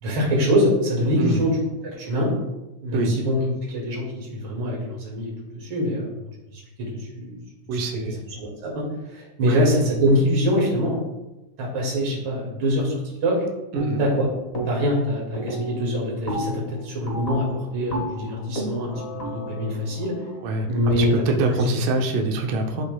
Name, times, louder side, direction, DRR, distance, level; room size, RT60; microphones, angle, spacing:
voice 1, 0.0-2.3 2.8-6.1 6.5-6.9 7.1-7.3 8.3-11.0 11.6-13.4 14.0-14.3 14.7-20.1 20.7-21.6, equal, 45° right, -3 dB, 2.6 m, -24 dB
voice 2, 7.7-8.2 9.5-9.6 13.7-14.0 20.4-20.7 21.0-22.9, right 2 dB, 90° right, 2 dB, 2.4 m, -24 dB
sound 1, 13.8-14.2 14.5-15.0 15.3-21.2, right 1 dB, 65° left, 0.5 m, -33 dB
12.5 x 5.0 x 2.3 m, 1.0 s
omnidirectional pair, 3.7 m